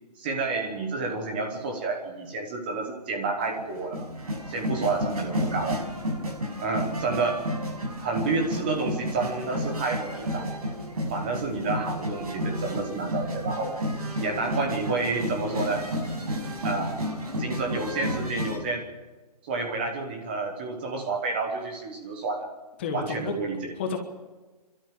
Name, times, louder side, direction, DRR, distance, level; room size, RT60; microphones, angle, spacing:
voice 1, 0.2-4.1 4.5-5.8 6.6-7.4 8.0-10.5 11.1-13.7 14.2-15.9 16.6-16.9 17.4-18.9 19.4-22.5 22.9-23.7, right 3 dB, 15° right, 3 dB, 1.1 m, -30 dB
sound 1, 3.4-18.6, equal, 70° right, 6.5 m, -31 dB
voice 2, 22.8-23.3 23.8-24.0, left 5 dB, 15° left, 4 dB, 1.3 m, -31 dB
28.5 x 12.5 x 7.5 m, 1.2 s
hypercardioid pair, 180°, 20 cm